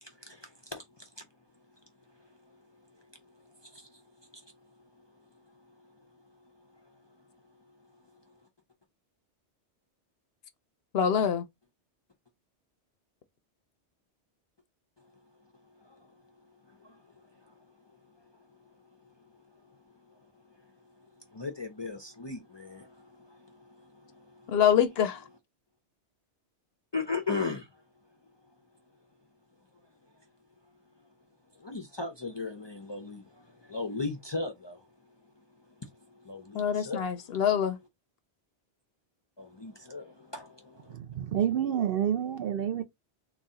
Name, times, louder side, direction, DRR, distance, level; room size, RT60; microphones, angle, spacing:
voice 1, 0.0-1.2 2.5-2.6 3.6-4.0 4.3-4.5 15.8-16.1 16.7-17.5 20.1-20.2 21.3-24.6 26.9-27.7 31.6-34.9 35.8-37.4 39.4-41.0, left 4 dB, 35° left, 0.4 m, -38 dB
voice 2, 10.9-11.4 24.5-25.2 36.5-37.8, left 8 dB, 65° left, 0.8 m, -25 dB
voice 3, 40.9-42.8, right 9 dB, 65° right, 0.7 m, -28 dB
4.0 x 2.4 x 3.6 m
omnidirectional pair, 1.2 m